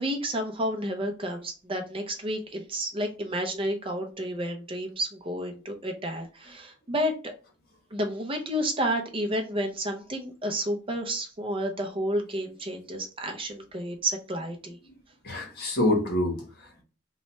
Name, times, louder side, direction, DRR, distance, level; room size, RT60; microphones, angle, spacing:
voice 1, 0.0-7.3 7.9-14.8, equal, 30° right, 4 dB, 0.6 m, -31 dB
voice 2, 15.2-16.8, left 1 dB, 55° left, 1 dB, 1.3 m, -27 dB
3.1 x 2.3 x 4.1 m, 0.34 s
head